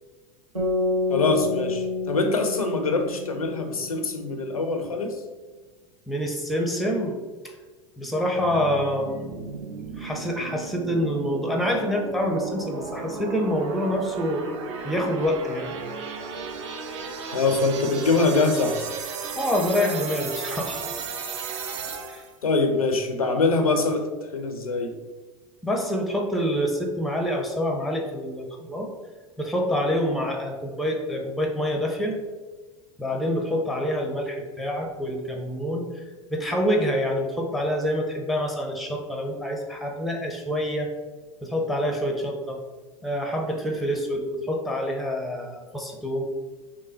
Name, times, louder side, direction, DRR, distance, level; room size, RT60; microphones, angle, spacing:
sound 1, 0.5-4.8, left 3 dB, 85° right, 1.0 m, -29 dB
voice 1, 1.1-5.2 17.3-18.9 22.4-24.1 24.3-24.9, left 3 dB, 80° left, 6 dB, 0.4 m, -23 dB
voice 2, 6.1-7.2 8.0-9.5 10.0-14.5 14.8-15.7 19.4-20.8 22.1-22.2 25.6-28.9 29.4-32.2 33.0-35.9 36.3-40.9 41.4-42.6 43.0-46.3, equal, ahead, 2 dB, 0.5 m, -26 dB
sound 2, 8.4-22.4, right 5 dB, 55° right, 0.5 m, -35 dB
3.7 x 3.1 x 2.7 m, 1.3 s
figure-of-eight pair, 80°, 18 cm